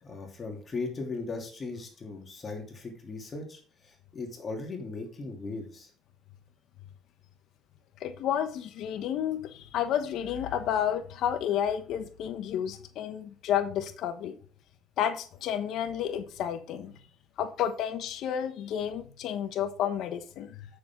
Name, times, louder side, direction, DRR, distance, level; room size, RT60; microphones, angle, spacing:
voice 1, 0.0-5.9, left 3 dB, 35° left, 2 dB, 3.0 m, -38 dB
voice 2, 8.0-14.4 15.0-17.0 17.4-20.7, left 9 dB, 70° left, 10 dB, 1.1 m, -31 dB
8.7 x 6.9 x 3.7 m, 0.42 s
supercardioid pair, 90°, 0 cm